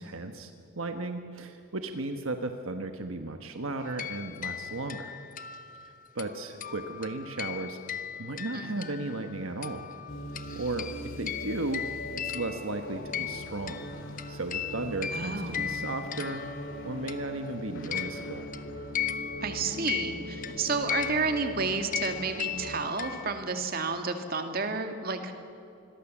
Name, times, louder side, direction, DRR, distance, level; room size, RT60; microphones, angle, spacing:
voice 1, 0.0-5.1 6.1-7.8 8.2-9.9 10.5-10.9 11.2-11.8 12.2-13.9 14.3-16.4 16.8-18.5, right 2 dB, 70° right, 6 dB, 1.3 m, -35 dB
sound 1, 3.8-9.3 9.6-17.5 17.8-23.5, left 9 dB, 40° left, 0.9 m, -37 dB
voice 2, 8.5-8.9 15.1-15.8 19.4-25.3, right 4 dB, 45° right, 6 dB, 2.2 m, -31 dB
sound 2, 10.1-22.8, equal, 65° left, 3.3 m, -41 dB
27.0 x 21.5 x 7.3 m, 2.9 s
head